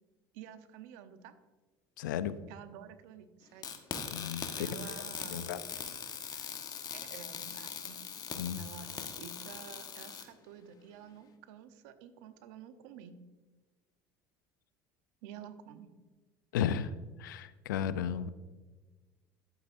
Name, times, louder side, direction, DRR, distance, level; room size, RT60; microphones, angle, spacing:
voice 1, 0.3-1.3 2.5-3.7 4.6-5.6 6.9-8.0 8.6-13.2 15.2-15.9, right 7 dB, 75° right, 10 dB, 0.9 m, -50 dB
voice 2, 2.0-2.4 4.1-4.7 5.3-5.6 8.4-8.6 16.5-16.9 17.2-18.3, left 9 dB, 90° left, 14 dB, 0.5 m, -34 dB
sound 1, 3.6-10.3, left 7 dB, 40° left, 1.3 m, -41 dB
11.5 x 8.4 x 2.6 m, 1.3 s
hypercardioid pair, 85°, 10 cm